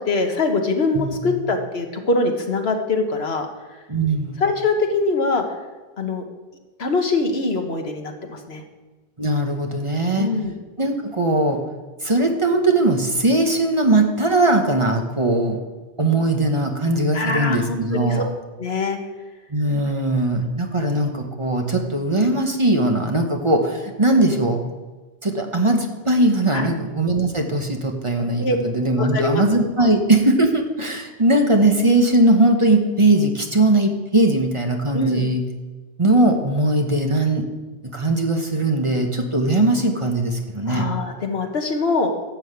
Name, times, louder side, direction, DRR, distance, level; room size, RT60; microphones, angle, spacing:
voice 1, 0.0-3.5 4.4-5.4 6.0-6.2 6.8-8.6 10.1-10.5 17.1-18.2 18.6-19.0 26.5-26.7 28.4-28.6 29.0-29.4 29.8-29.9 34.9-35.2 40.7-42.1, left 3 dB, 75° left, 4 dB, 1.5 m, -23 dB
voice 2, 0.9-1.3 3.9-4.4 9.2-10.3 10.8-11.6 12.0-15.6 16.0-18.3 19.5-24.6 25.2-35.4 36.0-37.5 37.8-40.9, right 2 dB, 30° right, 3 dB, 1.1 m, -19 dB
12.0 x 5.6 x 8.1 m, 1.2 s
omnidirectional pair, 1.1 m